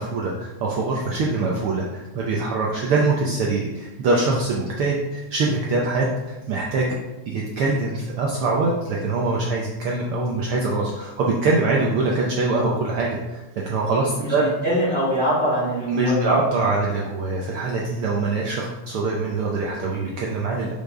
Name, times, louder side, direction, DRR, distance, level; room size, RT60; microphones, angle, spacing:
voice 1, 0.0-7.0 7.3-14.5 15.8-20.7, right 3 dB, 85° right, -2 dB, 1.2 m, -23 dB
voice 2, 14.2-16.4, equal, 20° left, -8 dB, 2.5 m, -23 dB
7.0 x 5.8 x 3.7 m, 1.0 s
omnidirectional pair, 3.5 m